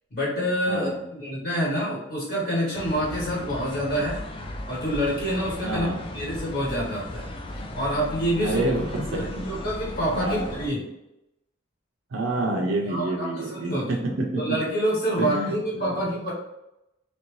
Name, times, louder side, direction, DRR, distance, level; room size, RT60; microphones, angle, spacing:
voice 1, 0.1-4.2 4.7-5.9 6.1-8.6 9.1-10.8 12.9-13.9 14.4-16.3, equal, 55° left, -6 dB, 1.1 m, -27 dB
voice 2, 0.7-1.0 5.6-6.1 8.4-9.5 10.1-10.5 12.1-14.0 15.2-16.0, right 1 dB, 85° right, 0 dB, 0.5 m, -28 dB
sound 1, 2.7-10.7, left 1 dB, 25° left, 0.3 m, -36 dB
3.0 x 2.6 x 3.1 m, 0.88 s
head